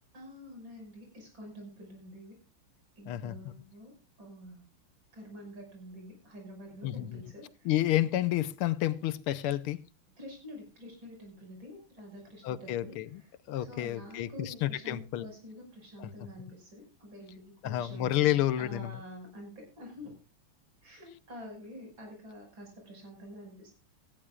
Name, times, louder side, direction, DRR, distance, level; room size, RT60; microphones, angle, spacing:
voice 1, 0.1-2.3 3.0-3.9 4.2-4.6 5.1-7.7 10.2-13.3 13.6-20.1 20.8-23.7, equal, 60° right, 6.5 m, -48 dB
voice 2, 6.8-7.2 7.7-9.8 12.4-13.2 13.5-15.3 16.0-16.1 17.6-18.9, left 13 dB, 90° left, 1.7 m, -30 dB
17.5 x 14.0 x 2.4 m
omnidirectional pair, 2.3 m